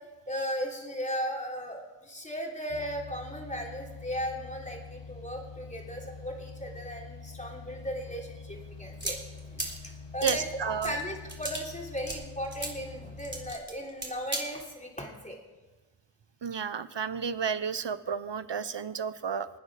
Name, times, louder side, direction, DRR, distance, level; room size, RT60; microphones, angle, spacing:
voice 1, 0.3-9.2 9.5-15.4, equal, 15° left, -1 dB, 3.6 m, -36 dB
sound 1, 2.7-13.6, left 4 dB, 75° left, 0.8 m, -46 dB
sound 2, 8.5-14.4, right 1 dB, 25° right, 3.8 m, -38 dB
voice 2, 10.2-11.0 16.4-19.5, right 7 dB, 75° right, 14 dB, 0.9 m, -31 dB
27.5 x 9.4 x 5.0 m, 1.2 s
wide cardioid pair, 50°, 43 cm